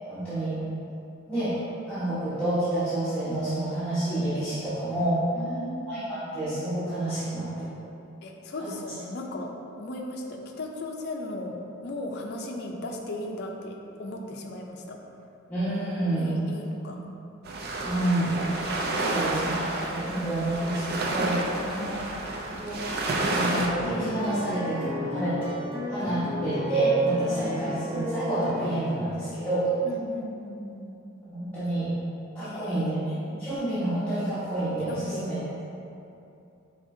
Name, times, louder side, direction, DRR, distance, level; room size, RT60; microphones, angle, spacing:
voice 1, 0.1-0.6 1.3-1.5 1.9-5.2 5.9-7.7 15.5-16.3 17.8-18.4 19.0-22.0 22.5-22.8 23.1-25.4 25.9-29.7 31.2-31.9 32.3-33.0 33.4-35.4, right 1 dB, 10° left, -16 dB, 1.0 m, -28 dB
voice 2, 5.3-6.1 8.2-15.0 16.1-17.0 21.5-22.1 27.2-27.8 29.8-30.9 32.4-33.0 34.9-35.3, left 1 dB, 50° left, 1 dB, 0.5 m, -37 dB
sound 1, 17.4-23.7, right 2 dB, 50° right, 0.5 m, -30 dB
sound 2, 23.8-28.9, left 2 dB, 25° right, 1.1 m, -33 dB
5.1 x 3.6 x 2.6 m, 2.7 s
head